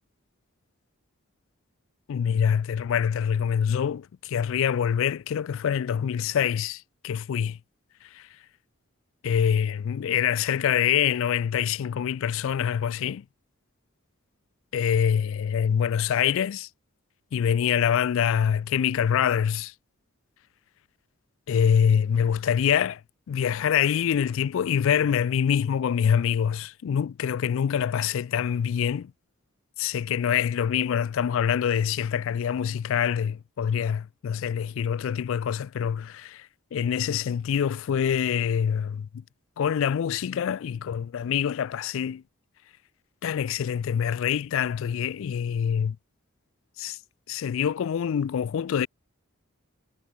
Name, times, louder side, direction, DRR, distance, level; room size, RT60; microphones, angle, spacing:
voice 1, 2.1-7.6 8.0-8.3 9.2-13.2 14.7-16.7 17.3-19.7 21.5-23.0 23.3-29.1 29.8-39.2 39.6-42.2 43.2-46.0 46.8-47.0 47.3-48.9, left 8 dB, 65° left, 0.3 m, -25 dB
head